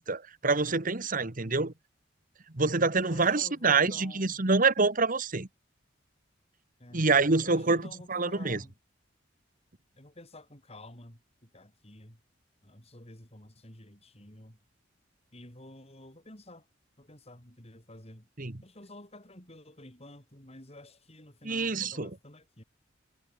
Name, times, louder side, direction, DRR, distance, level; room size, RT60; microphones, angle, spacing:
voice 1, 0.0-1.7 2.5-5.5 6.9-7.8 8.1-8.6 18.4-18.5 21.4-22.1, right 4 dB, 45° right, 1.6 m, -26 dB
voice 2, 3.0-4.4 6.8-7.1 7.4-8.7 10.0-12.2 12.6-14.6 15.3-16.7 17.0-18.3 18.6-22.6, left 1 dB, 30° left, 6.5 m, -50 dB
head